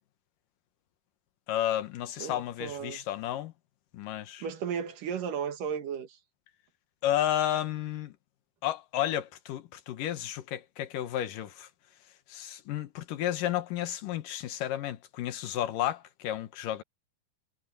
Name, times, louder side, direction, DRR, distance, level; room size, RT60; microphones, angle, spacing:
voice 1, 1.5-3.5 3.9-4.4 7.0-8.1 8.6-11.7 12.3-16.8, left 12 dB, 75° left, 2.8 m, -32 dB
voice 2, 2.2-3.0 4.4-6.2, right 7 dB, 75° right, 3.3 m, -35 dB
omnidirectional pair, 4.0 m